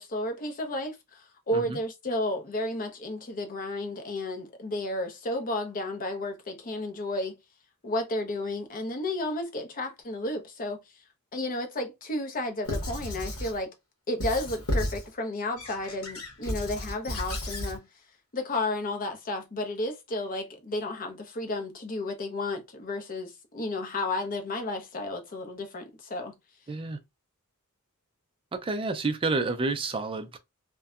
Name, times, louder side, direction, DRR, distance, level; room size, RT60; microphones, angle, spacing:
voice 1, 0.0-7.4 7.8-10.8 11.3-13.7 14.1-17.9 18.3-26.4, left 2 dB, 40° left, 0.6 m, -32 dB
Squeak / Writing, 12.6-13.6 14.2-15.1 15.6-17.8, equal, 70° left, 1.0 m, -33 dB
voice 2, 26.7-27.0 28.5-30.4, right 3 dB, 25° right, 0.4 m, -29 dB
2.6 x 2.2 x 2.3 m
head